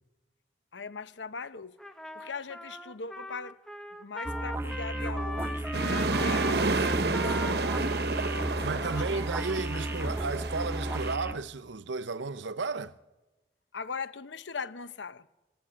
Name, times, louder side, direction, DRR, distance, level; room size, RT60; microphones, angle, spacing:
voice 1, 0.7-1.8 2.1-3.6 4.0-7.1 8.6-9.3 9.7-10.1 13.7-15.3, left 5 dB, 90° left, 0.9 m, -40 dB
Trumpet, 1.8-10.1, left 1 dB, 5° left, 1.1 m, -41 dB
sound 1, 4.3-11.3, right 1 dB, 15° right, 0.6 m, -34 dB
sound 2, 5.7-11.2, right 3 dB, 65° right, 1.0 m, -30 dB
voice 2, 8.6-12.9, right 4 dB, 90° right, 0.8 m, -33 dB
26.0 x 13.0 x 8.8 m
head